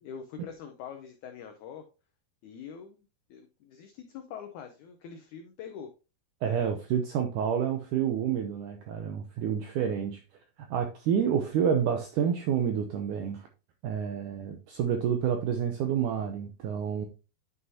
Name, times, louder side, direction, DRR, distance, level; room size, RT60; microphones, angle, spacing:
voice 1, 0.0-1.8 2.4-3.0 3.3-5.9, left 7 dB, 90° left, 1.7 m, -44 dB
voice 2, 6.4-10.2 10.7-13.5 13.8-17.1, right 8 dB, 85° right, 1.8 m, -29 dB
9.5 x 5.6 x 2.7 m
omnidirectional pair, 4.5 m